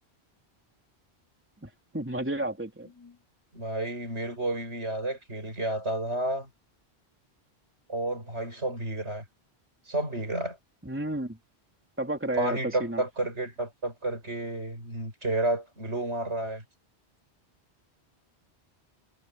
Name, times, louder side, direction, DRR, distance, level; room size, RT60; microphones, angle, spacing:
voice 1, 1.6-2.9 10.8-11.4 12.0-13.0, right 1 dB, 10° right, 3.1 m, -31 dB
voice 2, 2.9-3.2 3.5-6.5 7.9-9.2 9.9-10.6 12.4-16.6, right 1 dB, 85° right, 7.6 m, -31 dB
omnidirectional pair, 1.1 m